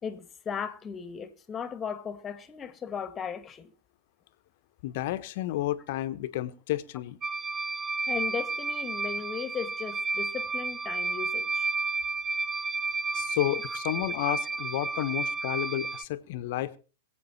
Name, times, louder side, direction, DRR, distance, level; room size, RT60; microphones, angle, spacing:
voice 1, 0.0-3.7 8.1-11.7, left 7 dB, 20° left, 1.8 m, -36 dB
voice 2, 4.8-7.2 13.1-16.8, left 15 dB, 55° left, 1.2 m, -31 dB
sound 1, 7.2-16.0, right 4 dB, 25° right, 0.6 m, -32 dB
22.5 x 8.2 x 4.3 m
hypercardioid pair, 110°, 0 cm